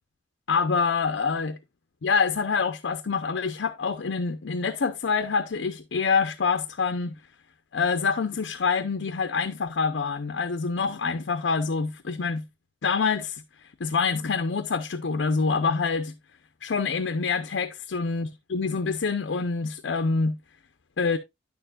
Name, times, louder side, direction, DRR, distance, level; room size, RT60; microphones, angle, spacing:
voice 1, 0.5-1.6 2.0-7.1 7.7-12.4 12.8-13.4 13.8-16.1 16.6-20.4 21.0-21.2, left 5 dB, 80° left, 0.6 m, -26 dB
9.6 x 6.7 x 2.4 m
head